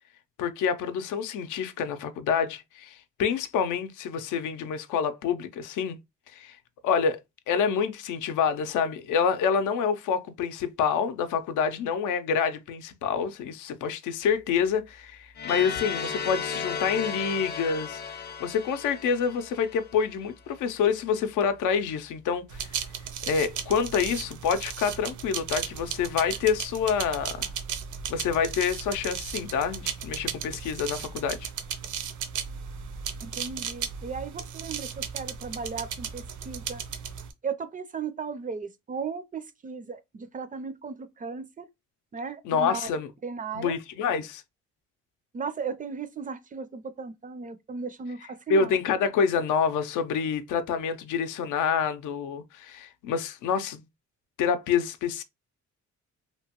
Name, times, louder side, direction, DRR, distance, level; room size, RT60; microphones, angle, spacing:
voice 1, 0.4-6.0 6.3-6.6 6.8-7.2 7.5-18.0 18.4-22.7 23.3-27.5 28.1-31.5 42.5-43.1 43.6-44.4 48.5-53.8 54.4-55.2, left 6 dB, 80° left, 0.5 m, -27 dB
sound 1, 15.4-20.2, left 6 dB, 35° left, 0.5 m, -35 dB
sound 2, 22.5-37.3, right 7 dB, 80° right, 0.6 m, -36 dB
voice 2, 33.2-36.8 37.4-41.7 42.1-42.9 43.2-43.8 45.3-48.8, right 5 dB, 30° right, 0.4 m, -36 dB
2.9 x 2.2 x 2.8 m
cardioid pair, 90°, 30 cm